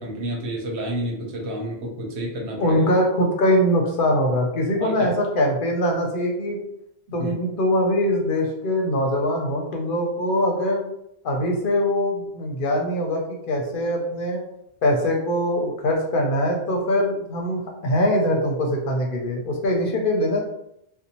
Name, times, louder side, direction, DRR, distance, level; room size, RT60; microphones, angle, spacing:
voice 1, 0.0-2.8 4.8-5.1 7.2-7.3, right 1 dB, 85° right, -1 dB, 1.0 m, -30 dB
voice 2, 2.6-6.6 7.1-10.8 11.2-14.4 14.8-20.4, left 1 dB, 60° left, 1 dB, 0.7 m, -22 dB
2.6 x 2.0 x 2.9 m, 0.78 s
omnidirectional pair, 1.1 m